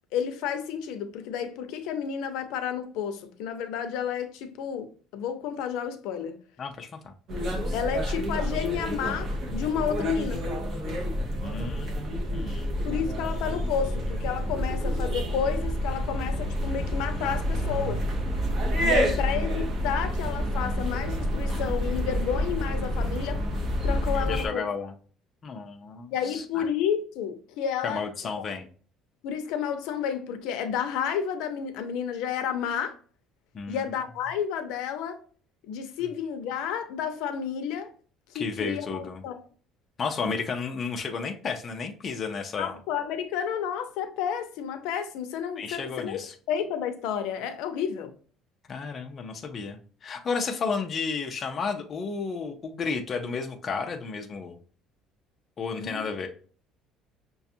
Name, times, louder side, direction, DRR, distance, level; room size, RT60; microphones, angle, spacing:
voice 1, 0.1-6.4 7.7-10.4 12.8-18.0 18.8-23.4 23.8-24.7 26.1-28.0 29.2-33.0 33.7-35.2 35.6-37.9 38.3-39.4 42.6-46.2 46.5-48.1 55.8-56.0, left 8 dB, 75° left, 0.5 m, -31 dB
voice 2, 6.6-7.1 11.3-12.0 12.3-12.7 19.0-19.2 24.1-24.9 25.4-26.6 27.8-28.7 33.5-33.9 38.3-39.2 40.0-42.8 45.6-46.3 48.7-54.6 55.6-56.3, left 5 dB, 25° left, 0.4 m, -32 dB
sound 1, 7.3-24.5, equal, 35° right, 0.7 m, -28 dB
5.8 x 2.3 x 2.7 m
cardioid pair, 175°, 0 cm